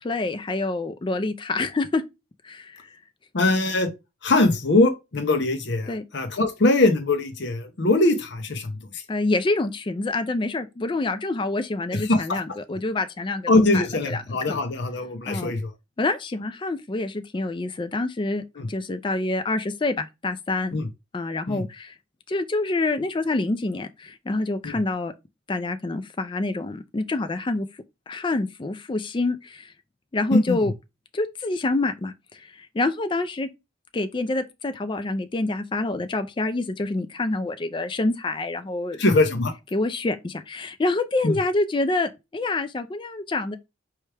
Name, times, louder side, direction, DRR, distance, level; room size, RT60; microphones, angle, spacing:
voice 1, 0.0-2.0 2.4-2.9 5.9-6.1 9.1-14.2 14.5-14.6 15.3-15.5 16.0-18.4 18.7-20.8 21.1-21.9 22.3-25.1 25.5-27.7 28.1-29.7 30.1-30.7 31.1-33.5 33.9-39.0 39.7-43.6, left 2 dB, 25° left, 0.3 m, -27 dB
voice 2, 3.3-3.9 4.2-9.0 11.9-12.2 13.5-15.7 18.6-18.7 20.7-20.9 21.5-21.6 24.6-24.8 30.3-30.5 39.0-39.5 41.2-41.3, left 2 dB, 55° left, 0.7 m, -22 dB
4.6 x 3.1 x 3.3 m
head